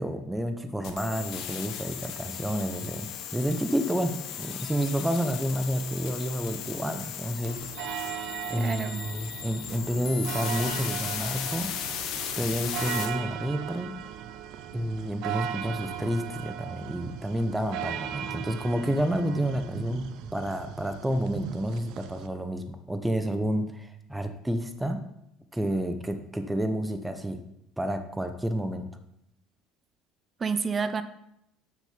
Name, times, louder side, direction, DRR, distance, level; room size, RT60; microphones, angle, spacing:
voice 1, 0.0-7.6 8.5-11.7 12.4-13.9 14.7-25.0 25.5-27.4 27.8-28.9, equal, 10° right, 7 dB, 0.9 m, -30 dB
sound 1, 0.8-13.0, left 9 dB, 65° left, 1.2 m, -37 dB
sound 2, 7.4-22.3, right 10 dB, 70° right, 0.6 m, -38 dB
voice 2, 8.5-9.0 30.4-31.0, right 5 dB, 30° right, 12 dB, 0.6 m, -29 dB
7.7 x 6.4 x 5.1 m, 0.78 s
supercardioid pair, 95°, 0 cm